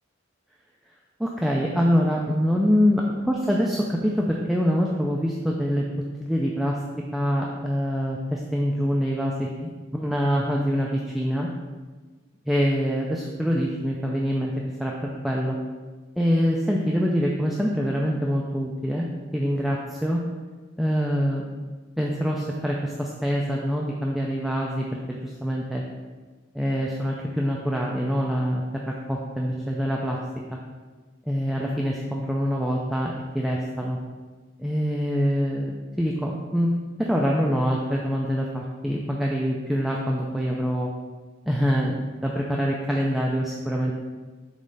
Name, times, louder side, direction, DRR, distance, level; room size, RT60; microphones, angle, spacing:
voice 1, 1.2-6.8 7.1-11.5 12.5-14.5 14.8-14.9 15.2-15.6 16.2-19.1 19.3-20.2 20.8-21.5 22.0-25.8 26.5-30.2 31.3-34.0 34.6-40.9 41.5-44.0, equal, ahead, -2 dB, 0.4 m, -25 dB
7.1 x 3.2 x 5.4 m, 1.3 s
head